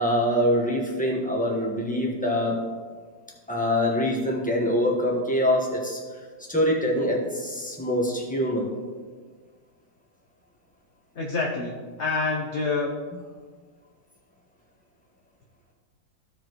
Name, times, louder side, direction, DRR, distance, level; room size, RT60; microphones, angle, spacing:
voice 1, 0.0-2.6 3.5-6.0 6.5-8.7, equal, 5° left, -2 dB, 1.1 m, -24 dB
voice 2, 11.1-12.9, left 3 dB, 50° left, 0 dB, 0.9 m, -27 dB
15.0 x 5.0 x 3.1 m, 1.5 s
omnidirectional pair, 2.0 m